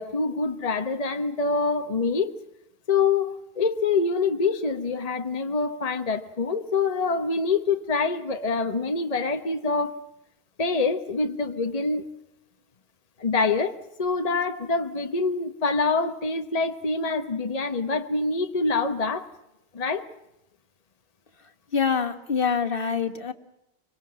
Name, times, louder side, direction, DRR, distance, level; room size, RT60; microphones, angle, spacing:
voice 1, 0.0-2.4 2.9-9.9 10.6-12.1 13.2-19.3 19.7-20.1, left 4 dB, 40° left, 6 dB, 1.0 m, -25 dB
voice 2, 21.7-23.3, left 6 dB, 60° left, 6 dB, 1.7 m, -25 dB
24.5 x 24.0 x 7.5 m, 0.86 s
omnidirectional pair, 1.0 m